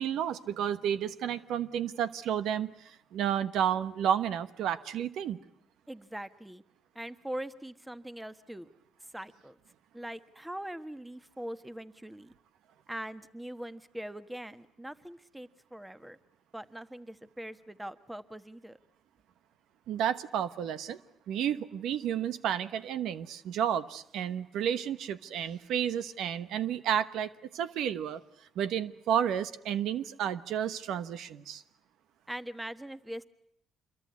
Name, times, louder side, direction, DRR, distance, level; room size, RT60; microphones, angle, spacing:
voice 1, 0.0-5.4 19.9-21.0 21.3-28.2 28.5-31.6, right 9 dB, 85° right, 13 dB, 1.1 m, -31 dB
voice 2, 5.9-6.6 6.9-8.7 9.1-9.6 9.9-12.3 12.9-16.2 16.5-18.8 32.3-33.2, right 1 dB, 10° right, 13 dB, 1.3 m, -42 dB
27.0 x 23.0 x 9.6 m, 0.72 s
cardioid pair, 90°, 0 cm